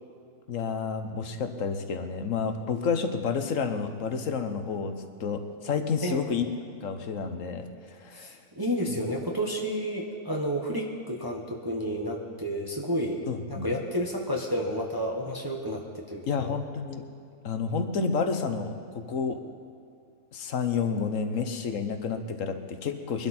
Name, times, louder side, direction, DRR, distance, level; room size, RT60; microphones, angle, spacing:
voice 1, 0.5-6.5 6.8-8.3 8.8-9.0 13.3-13.8 16.3-17.1 17.4-19.4 20.3-23.3, left 5 dB, 60° left, 7 dB, 1.3 m, -30 dB
voice 2, 6.0-6.4 8.1-16.5, equal, 15° right, -1 dB, 1.3 m, -31 dB
22.5 x 12.0 x 4.4 m, 2.4 s
omnidirectional pair, 1.6 m